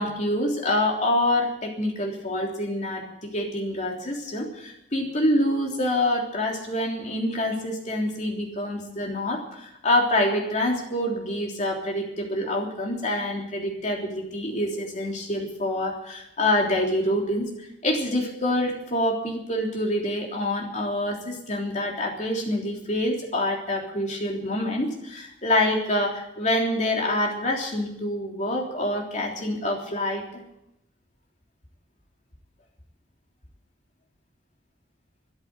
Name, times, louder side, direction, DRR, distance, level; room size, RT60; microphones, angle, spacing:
voice 1, 0.0-17.5 17.8-30.4, left 1 dB, 40° left, 0 dB, 3.4 m, -26 dB
13.0 x 10.5 x 9.6 m, 0.81 s
head